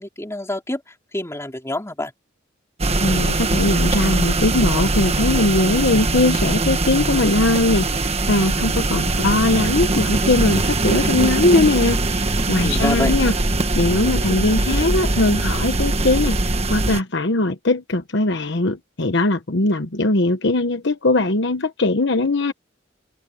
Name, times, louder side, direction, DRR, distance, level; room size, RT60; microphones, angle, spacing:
voice 1, 0.0-2.1 12.6-13.1, left 1 dB, 15° left, 4.2 m, -27 dB
sound 1, 2.8-17.0, right 2 dB, 35° right, 1.3 m, -21 dB
voice 2, 3.0-13.3 13.7-22.5, left 2 dB, 65° left, 1.1 m, -20 dB
head